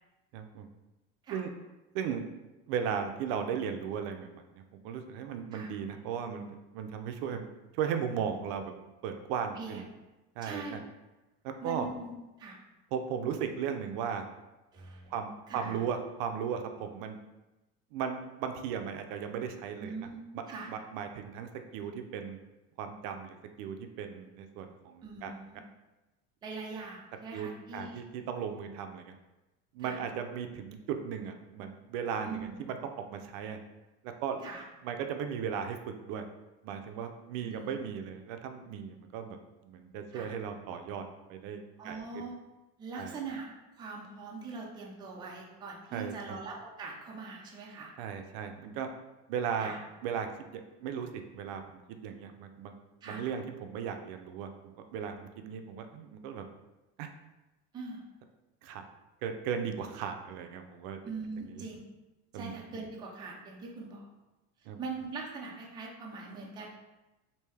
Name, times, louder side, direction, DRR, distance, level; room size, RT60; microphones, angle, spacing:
voice 1, 0.3-0.7 1.3-1.5 1.9-2.2 2.7-6.5 6.7-7.5 7.7-8.7 9.0-9.8 10.4-10.8 11.4-11.9 12.9-14.3 15.1-17.2 17.9-20.0 20.3-22.4 22.8-25.3 27.3-29.1 29.7-32.8 33.1-33.6 34.2-34.4 34.8-36.2 36.6-39.4 39.6-41.0 41.3-42.2 42.9-43.1 45.9-46.4 48.0-48.9 49.3-49.8 50.0-52.7 53.0-56.4 57.0-57.1 58.6-58.8 59.2-61.0 61.4-61.6 62.3-62.6 64.7-64.8, right 7 dB, 75° right, 6 dB, 0.5 m, -36 dB
voice 2, 9.6-9.9 10.4-10.8 11.6-12.6 14.7-15.1 15.5-15.8 19.8-20.2 20.5-20.7 25.0-25.6 26.4-28.0 29.8-30.0 32.2-32.6 34.4-34.6 37.4-37.8 40.1-40.3 41.8-42.4 42.8-43.5 43.8-47.9 49.6-49.8 53.0-53.2 57.7-58.1 61.0-61.8 62.3-64.1 64.8-66.7, right 4 dB, 15° right, -2 dB, 0.4 m, -42 dB
3.3 x 2.6 x 3.2 m, 1.1 s
cardioid pair, 165°, 30 cm